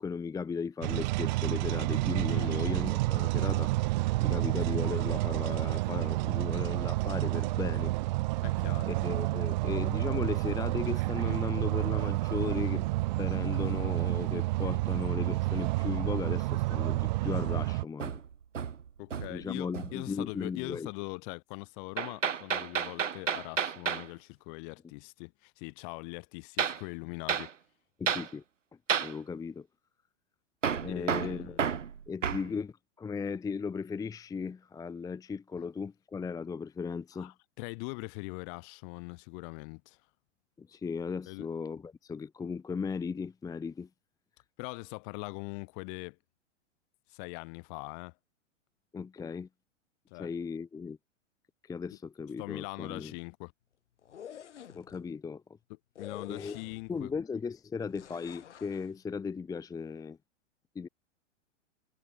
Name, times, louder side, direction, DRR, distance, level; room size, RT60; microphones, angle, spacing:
voice 1, 0.0-7.9 8.9-12.9 13.2-18.2 19.3-20.9 28.0-28.4 29.0-29.7 30.7-31.6 32.1-37.3 40.6-43.9 48.9-49.5 50.2-51.0 51.6-53.1 54.7-55.4 56.3-56.6 56.9-60.2 60.7-60.9, left 5 dB, 10° left, 0.8 m, -36 dB
sound 1, 0.8-17.8, right 20 dB, 40° right, 0.4 m, -30 dB
voice 2, 2.3-2.6 8.4-9.0 19.0-27.5 30.9-31.6 32.4-32.6 35.6-35.7 37.1-40.0 41.3-41.5 44.6-46.2 47.1-48.1 50.1-50.3 52.4-53.5 56.0-57.1, left 36 dB, 45° left, 2.9 m, -42 dB
Hammer, 18.0-19.5 19.7-20.1 22.0-24.1 26.6-26.8 27.3-27.5 28.1-28.3 28.9-29.2 30.6-32.5, right 7 dB, 80° right, 2.9 m, -31 dB
sound 2, 54.0-55.0 56.0-57.0 57.9-58.9, left 9 dB, 70° left, 6.9 m, -48 dB
hypercardioid pair, 110°, 37 cm